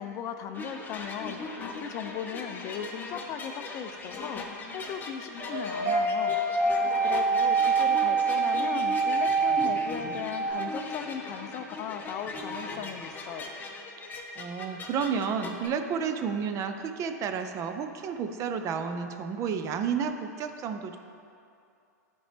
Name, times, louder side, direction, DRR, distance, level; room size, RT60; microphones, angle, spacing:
voice 1, 0.0-1.4 1.8-4.4 4.7-6.4 7.0-13.5, left 8 dB, 40° left, 7 dB, 0.4 m, -37 dB
sound 1, 0.5-15.7, left 2 dB, 20° left, 0.8 m, -39 dB
sound 2, 5.4-10.5, right 4 dB, 65° right, 1.7 m, -26 dB
voice 2, 14.4-21.0, right 6 dB, 35° right, 7 dB, 0.5 m, -31 dB
11.0 x 4.4 x 3.4 m, 2.5 s
hypercardioid pair, 110°, 9 cm